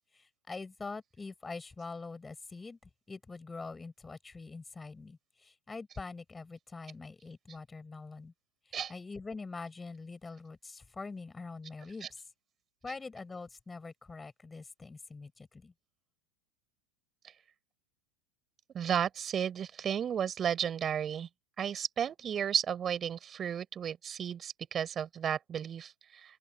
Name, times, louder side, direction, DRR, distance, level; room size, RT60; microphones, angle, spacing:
voice 1, 0.0-8.3 8.7-12.2 12.8-15.7, left 4 dB, 15° left, 6.1 m, -44 dB
voice 2, 18.7-21.3 21.6-26.4, right 8 dB, 30° right, 6.2 m, -33 dB
open air
hypercardioid pair, 105°, 0 cm